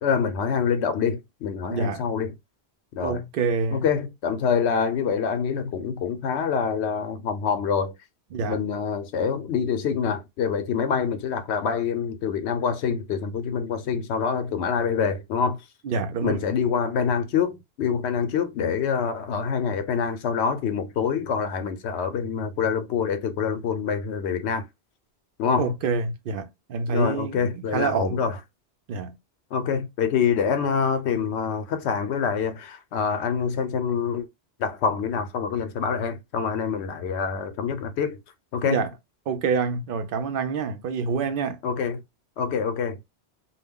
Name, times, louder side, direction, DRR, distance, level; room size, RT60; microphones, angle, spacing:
voice 1, 0.0-2.3 3.0-3.2 3.7-7.9 8.5-15.6 16.2-24.6 25.4-25.7 26.9-28.4 29.5-34.3 34.6-38.2 38.5-38.8 41.6-42.0 42.4-43.2, left 6 dB, 90° left, 0.9 m, -26 dB
voice 2, 1.7-2.0 3.0-3.8 8.3-8.6 15.8-16.4 25.6-28.2 28.9-29.2 38.7-38.9 39.3-41.6, right 5 dB, 65° right, 0.7 m, -27 dB
2.3 x 2.1 x 3.5 m
omnidirectional pair, 1.1 m